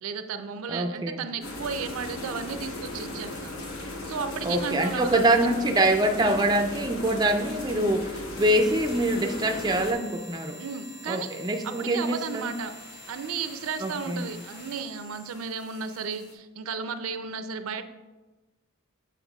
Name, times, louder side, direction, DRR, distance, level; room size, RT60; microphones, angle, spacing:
voice 1, 0.0-3.5 4.0-5.4 6.2-6.4 10.6-11.3 11.6-12.7 13.1-17.8, right 5 dB, 85° right, 10 dB, 0.4 m, -34 dB
voice 2, 0.7-1.2 4.4-10.6 11.1-12.6 13.8-14.3, right 1 dB, 20° right, 4 dB, 0.3 m, -25 dB
sound 1, 1.4-9.9, left 1 dB, 80° left, 0.9 m, -37 dB
sound 2, 1.9-16.3, left 2 dB, 55° left, 1.1 m, -49 dB
7.1 x 5.8 x 2.3 m, 1.2 s
head